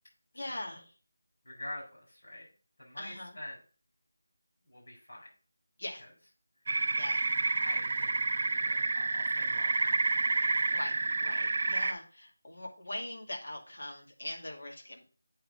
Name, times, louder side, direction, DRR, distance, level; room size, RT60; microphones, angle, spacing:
voice 1, 0.3-0.9 3.0-3.4 5.8-6.0 7.0-7.3 10.7-10.9 11.2-15.1, left 1 dB, 65° left, 0 dB, 2.4 m, -41 dB
voice 2, 1.4-2.5 2.8-3.6 4.6-5.3 6.0-6.1 7.6-10.0, left 1 dB, 50° left, -4 dB, 4.6 m, -46 dB
sound 1, 6.7-11.9, right 3 dB, 35° right, 0.4 m, -29 dB
8.8 x 3.7 x 5.6 m, 0.39 s
figure-of-eight pair, 175°, 0 cm